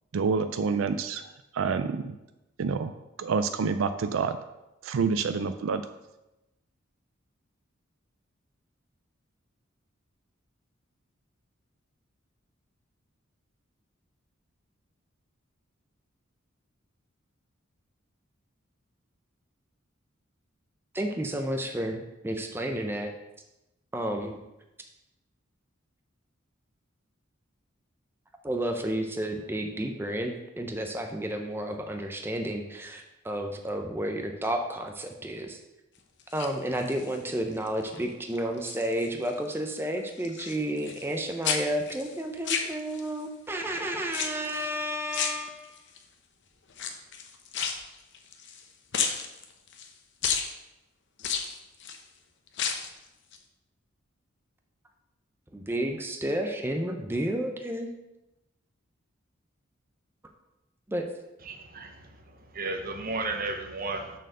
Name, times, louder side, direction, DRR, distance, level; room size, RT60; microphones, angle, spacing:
voice 1, 0.1-1.2 1.5-2.2 2.6-2.9 3.2-4.4 4.8-5.8, right 5 dB, 75° right, 10 dB, 0.4 m, -27 dB
voice 2, 20.9-23.1 23.9-24.4 28.4-35.6 36.3-45.6 55.5-57.9 60.9-61.0, right 1 dB, 10° right, 4 dB, 0.6 m, -31 dB
sound 1, 36.2-37.2 37.6-38.0 38.3-39.4 39.6-41.2 41.4-43.2 44.1-44.7 45.1-46.0 46.7-48.6 48.9-49.9 50.2-50.5 51.2-52.0 52.5-53.0 53.3-53.4, left 7 dB, 60° left, 0.8 m, -32 dB
voice 3, 61.5-61.9 62.5-64.1, right 3 dB, 45° right, 4 dB, 1.0 m, -33 dB
6.3 x 4.5 x 6.6 m, 0.96 s
head